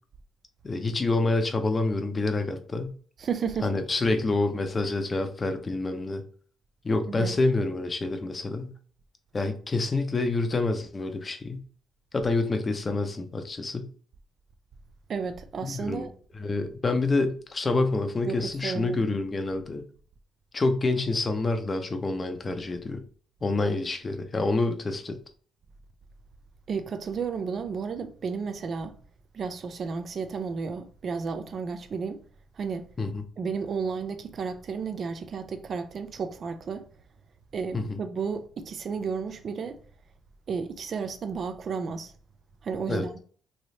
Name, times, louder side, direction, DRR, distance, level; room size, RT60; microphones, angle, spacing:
voice 1, 0.6-3.0 3.6-6.2 6.8-8.7 9.3-11.6 12.1-13.9 15.6-16.1 16.3-19.8 20.5-23.0 23.4-25.2 33.0-33.2 37.7-38.0 42.9-43.1, left 3 dB, 30° left, 0.6 m, -27 dB
voice 2, 3.2-3.8 7.1-7.3 15.1-16.1 18.3-19.0 26.7-29.0 29.3-32.2 32.6-32.9 33.4-36.9 37.5-39.8 40.5-42.1 42.6-43.2, right 5 dB, 50° right, 0.4 m, -32 dB
3.1 x 3.0 x 2.7 m
cardioid pair, 90°, 0 cm